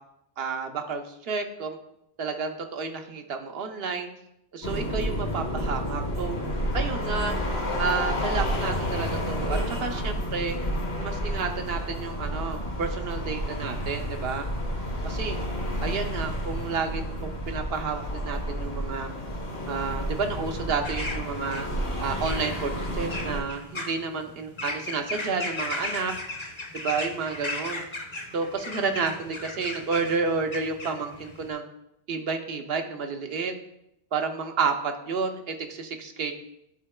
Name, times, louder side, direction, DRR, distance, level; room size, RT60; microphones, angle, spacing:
voice 1, 0.4-1.8 2.2-4.1 4.5-6.4 6.7-7.4 7.8-10.6 11.0-14.5 15.0-15.4 15.8-19.1 19.7-21.7 22.0-26.1 26.7-27.8 28.3-31.6 32.1-33.5 34.1-36.3, right 5 dB, 70° right, 5 dB, 0.9 m, -30 dB
sound 1, 4.6-23.4, equal, 70° left, 1.5 m, -30 dB
sound 2, 20.8-31.5, left 2 dB, 30° left, 0.7 m, -37 dB
11.0 x 3.9 x 2.2 m, 0.81 s
omnidirectional pair, 1.1 m